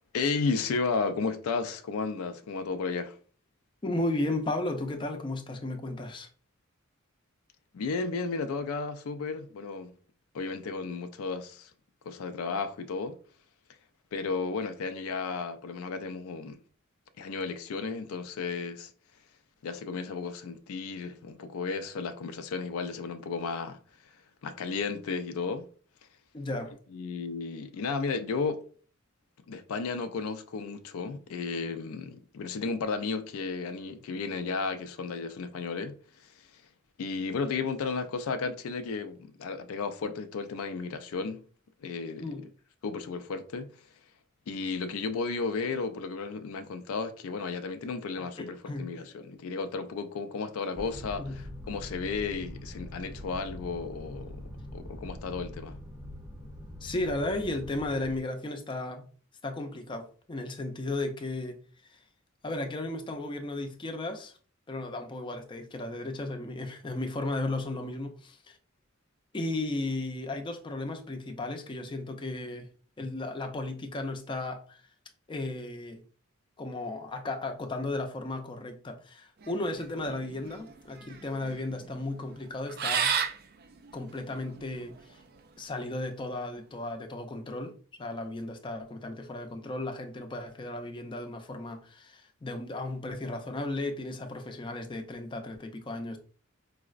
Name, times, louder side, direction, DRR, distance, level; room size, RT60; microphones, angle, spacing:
voice 1, 0.1-3.2 7.7-9.9 10.3-11.7 12.0-13.2 14.1-16.6 17.2-18.9 19.6-24.1 24.4-25.7 26.9-28.6 29.5-36.6 37.0-41.4 41.8-42.3 42.8-43.9 44.5-55.8, left 4 dB, 90° left, 0.4 m, -33 dB
voice 2, 3.8-6.3 26.3-26.7 42.2-42.4 48.2-48.9 51.2-51.3 56.8-59.1 59.4-61.6 61.9-62.0 62.4-64.4 64.7-68.6 69.3-72.7 73.0-74.8 75.3-76.0 76.6-83.1 83.9-85.2 85.6-96.2, left 2 dB, 25° left, 0.4 m, -35 dB
sound 1, 50.7-58.2, left 1 dB, 5° right, 0.7 m, -43 dB
sound 2, 79.4-85.2, right 7 dB, 45° right, 0.4 m, -34 dB
4.6 x 2.0 x 2.4 m
head